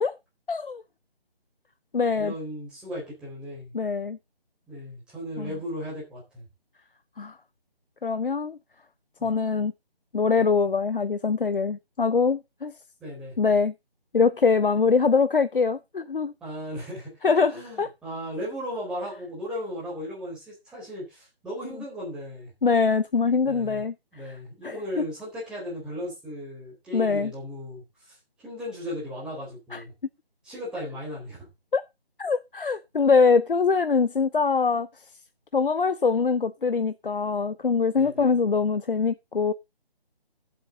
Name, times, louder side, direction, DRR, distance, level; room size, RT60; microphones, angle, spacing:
voice 1, 0.5-0.8 1.9-2.3 3.7-4.2 5.4-5.5 7.2-7.3 8.0-8.6 9.2-9.7 10.1-12.7 13.4-13.7 14.1-16.3 17.2-17.9 22.6-23.9 24.2-24.3 24.6-24.8 26.9-27.3 29.7-29.8 31.7-31.8 32.2-34.9 35.5-39.5, left 5 dB, 60° left, 0.7 m, -23 dB
voice 2, 2.2-3.7 4.7-6.4 9.2-9.3 13.0-13.4 16.4-17.1 17.5-22.5 23.5-23.8 24.1-28.1 28.4-29.9 30.4-31.5 38.0-38.3, equal, 5° right, 4.1 m, -36 dB
14.5 x 7.7 x 3.8 m
figure-of-eight pair, 165°, 30 cm